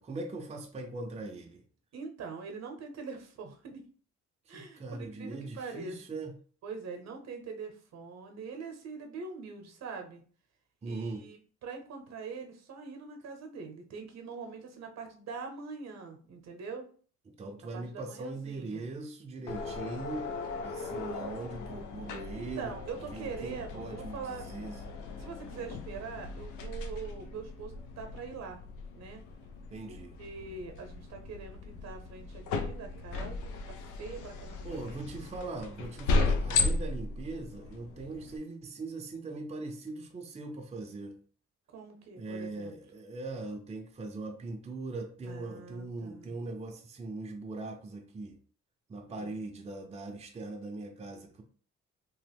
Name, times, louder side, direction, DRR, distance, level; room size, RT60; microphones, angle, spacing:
voice 1, 0.0-1.6 4.5-6.4 10.8-11.3 17.3-22.8 23.1-24.8 29.7-30.2 34.6-41.2 42.2-48.4 48.9-51.4, right 3 dB, 20° right, 2 dB, 0.5 m, -40 dB
voice 2, 1.9-3.8 4.5-6.0 6.6-10.2 10.8-11.4 11.6-16.9 17.7-18.9 22.3-24.4 25.2-28.6 28.9-29.2 29.9-35.0 41.7-42.8 45.2-46.4 49.1-49.3, right 5 dB, 60° right, 4 dB, 0.8 m, -43 dB
sound 1, 19.5-38.4, left 3 dB, 85° left, 0.5 m, -36 dB
2.9 x 2.0 x 3.4 m, 0.44 s
cardioid pair, 90°, 30 cm